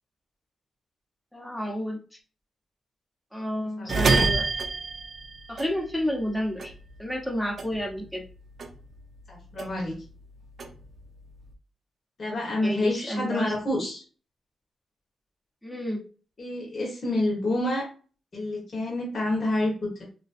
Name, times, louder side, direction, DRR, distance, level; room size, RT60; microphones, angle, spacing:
voice 1, 1.3-2.0 3.3-4.5 5.5-6.7 7.0-8.2 12.6-13.5 15.6-16.0, equal, 5° left, 0 dB, 0.8 m, -30 dB
voice 2, 3.8-4.2 9.3-9.9 12.2-14.0 16.4-17.9 18.3-20.0, left 1 dB, 50° left, -3 dB, 1.2 m, -28 dB
sound 1, 3.9-6.3 6.6-8.3 8.6-10.0 10.4-11.5, right 3 dB, 55° right, 0.4 m, -28 dB
3.1 x 2.5 x 2.4 m, 0.38 s
cardioid pair, 90°, 0 cm